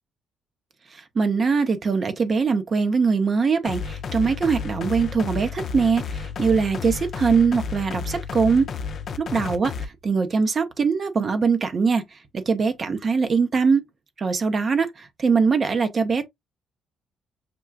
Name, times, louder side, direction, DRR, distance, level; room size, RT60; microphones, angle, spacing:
voice 1, 0.9-8.7 9.2-13.8 14.2-16.3, right 5 dB, 45° right, 0.8 m, -22 dB
sound 1, 3.6-9.8, left 5 dB, 60° left, 0.6 m, -32 dB
6.0 x 2.3 x 2.3 m
supercardioid pair, 65°, 0 cm